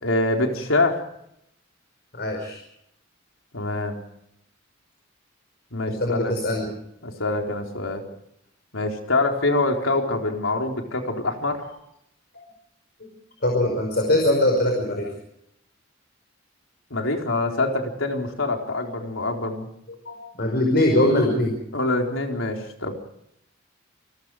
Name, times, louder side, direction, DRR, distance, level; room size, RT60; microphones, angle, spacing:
voice 1, 0.0-1.0 3.5-3.9 5.7-6.3 7.0-8.0 8.7-11.6 16.9-19.7 21.7-22.9, left 2 dB, 90° left, 2 dB, 4.2 m, -25 dB
voice 2, 2.1-2.6 5.9-6.7 13.0-13.1 13.4-15.1 20.1-21.5, left 1 dB, 55° left, 1 dB, 5.4 m, -22 dB
29.0 x 22.0 x 5.0 m, 0.77 s
head